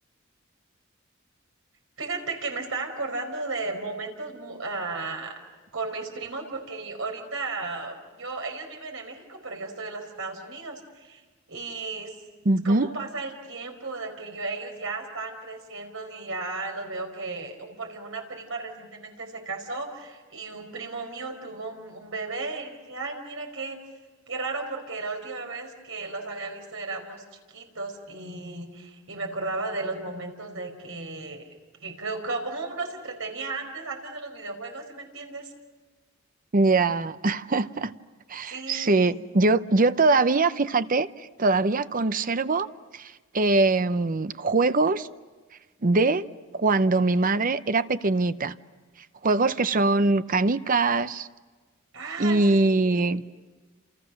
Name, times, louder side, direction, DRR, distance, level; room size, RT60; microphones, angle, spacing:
voice 1, 2.0-5.3 5.7-11.2 11.5-12.1 12.6-23.8 24.3-31.5 31.8-35.5 38.5-39.2 51.9-53.2, right 3 dB, 75° right, 3 dB, 4.8 m, -35 dB
voice 2, 12.5-12.9 36.5-37.9 38.3-42.7 42.9-45.1 45.8-46.2 46.5-48.5 49.2-51.3 52.2-53.2, right 3 dB, 45° right, 13 dB, 0.7 m, -22 dB
30.0 x 28.5 x 6.5 m, 1.3 s
head